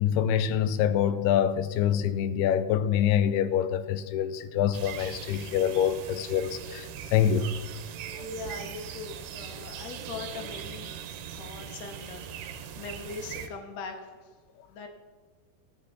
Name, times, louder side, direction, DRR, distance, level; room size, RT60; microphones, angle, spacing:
voice 1, 0.0-7.5, left 9 dB, 85° left, 12 dB, 2.7 m, -25 dB
sound 1, 4.7-13.5, right 9 dB, 85° right, 2.9 m, -40 dB
voice 2, 7.9-10.9 11.3-14.3 14.7-14.9, left 5 dB, 55° left, 4 dB, 2.1 m, -41 dB
14.0 x 11.0 x 4.1 m, 1.5 s
omnidirectional pair, 4.6 m